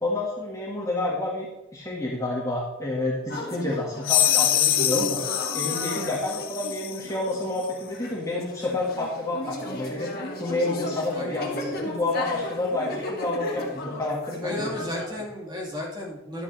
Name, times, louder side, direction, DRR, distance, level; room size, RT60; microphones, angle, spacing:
voice 1, 0.0-5.2 5.5-10.1 10.4-14.7, left 2 dB, 15° left, -4 dB, 1.7 m, -29 dB
sound 1, 3.3-15.1, left 1 dB, 45° left, 1.9 m, -35 dB
sound 2, 4.0-7.0, left 11 dB, 65° left, 0.7 m, -24 dB
voice 2, 11.1-11.7 14.4-16.4, left 1 dB, 20° right, -3 dB, 2.5 m, -34 dB
11.5 x 8.8 x 3.3 m, 1.0 s
head